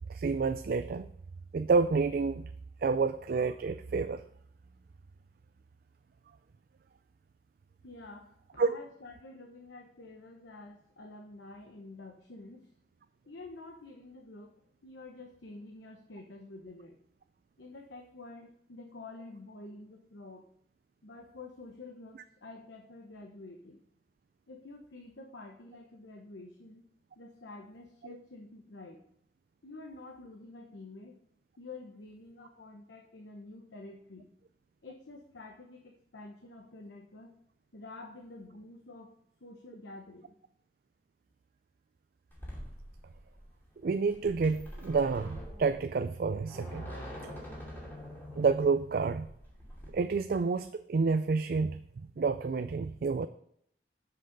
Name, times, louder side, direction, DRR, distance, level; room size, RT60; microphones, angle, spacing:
voice 1, 0.1-1.1 1.5-2.5 2.8-4.2 8.6-8.8 43.8-46.9 47.2-47.3 48.4-49.3 49.9-53.3, right 4 dB, 55° right, 10 dB, 0.3 m, -29 dB
voice 2, 7.8-12.7 13.3-14.5 14.8-17.0 17.6-20.5 21.0-23.8 24.5-26.9 27.2-29.0 29.6-31.2 31.6-34.3 34.8-37.4 37.7-39.1 39.4-40.4, left 2 dB, 90° left, 3 dB, 0.9 m, -49 dB
sound 1, 42.3-49.9, equal, 10° left, 2.6 m, -45 dB
7.6 x 6.2 x 5.2 m, 0.69 s
head